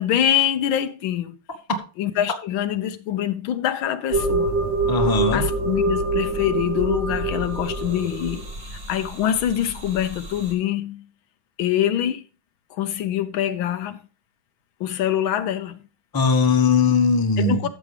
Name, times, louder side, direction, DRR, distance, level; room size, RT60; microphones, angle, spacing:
voice 1, 0.0-1.3 2.0-4.5 5.3-8.4 8.9-11.0 11.6-12.2 12.8-14.0 14.8-15.8 17.4-17.7, left 10 dB, 75° left, 1.4 m, -24 dB
sound 1, 4.1-10.5, right 2 dB, 60° right, 3.3 m, -26 dB
voice 2, 4.9-5.4 16.1-17.6, left 4 dB, 15° left, 0.8 m, -19 dB
13.0 x 7.2 x 3.3 m
omnidirectional pair, 2.3 m